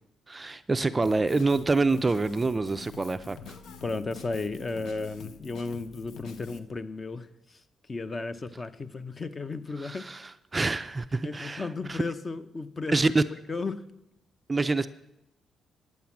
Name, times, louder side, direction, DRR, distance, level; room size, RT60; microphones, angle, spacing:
voice 1, 0.3-3.6 9.8-12.0 12.9-13.2 14.5-14.9, right 3 dB, 20° right, 0.4 m, -26 dB
Drum kit, 1.0-6.6, left 5 dB, 85° left, 0.9 m, -46 dB
voice 2, 3.8-7.6 7.9-10.1 11.2-12.9 13.5-13.9, left 3 dB, 25° left, 0.6 m, -34 dB
9.3 x 9.1 x 7.1 m
cardioid pair, 125°, 0 cm